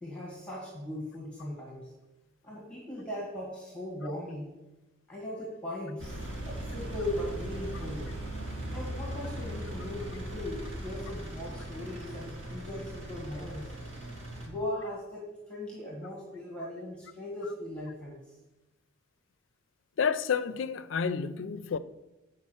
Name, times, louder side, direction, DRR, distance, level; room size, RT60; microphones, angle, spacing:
voice 1, 0.0-1.9 2.4-4.5 5.1-8.1 8.7-13.7 14.4-18.2, left 1 dB, 5° left, 1.7 m, -39 dB
Engine, 6.0-14.5, right 1 dB, 65° right, 2.1 m, -39 dB
voice 2, 20.0-21.8, left 6 dB, 65° left, 0.4 m, -30 dB
8.5 x 4.8 x 6.2 m
head